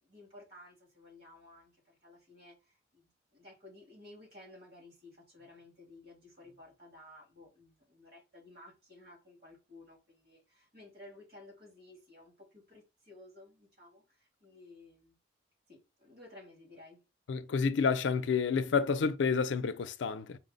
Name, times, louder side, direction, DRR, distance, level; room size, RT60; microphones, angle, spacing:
voice 1, 0.0-15.2 15.7-17.0, left 2 dB, 55° right, 2.0 m, -55 dB
voice 2, 17.3-20.4, left 5 dB, 80° left, 0.4 m, -29 dB
4.5 x 2.0 x 3.8 m
head